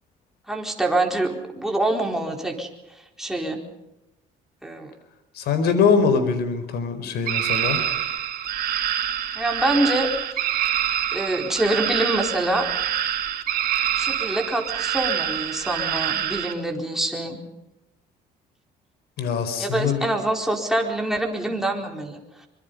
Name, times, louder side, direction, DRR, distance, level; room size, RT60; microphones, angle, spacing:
voice 1, 0.5-2.7 3.2-3.6 4.6-4.9 9.3-10.5 11.1-12.7 14.0-17.4 19.6-22.5, right 1 dB, ahead, 1 dB, 4.3 m, -25 dB
voice 2, 5.3-7.8 19.2-20.0, left 5 dB, 75° left, 10 dB, 4.5 m, -22 dB
sound 1, 7.3-16.5, right 10 dB, 60° right, 2.8 m, -26 dB
24.5 x 23.5 x 5.4 m, 0.95 s
cardioid pair, 110°, 17 cm